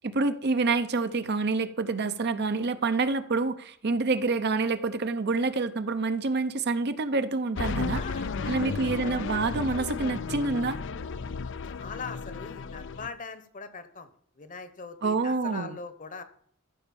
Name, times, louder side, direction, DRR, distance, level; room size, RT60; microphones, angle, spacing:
voice 1, 0.0-8.0 8.5-10.8 15.0-15.8, right 3 dB, 50° right, 0.8 m, -27 dB
sound 1, 7.6-13.1, left 4 dB, 60° left, 0.5 m, -33 dB
voice 2, 7.9-9.1 11.6-14.1 14.4-16.2, left 4 dB, 40° left, 1.0 m, -41 dB
14.0 x 5.2 x 7.1 m
head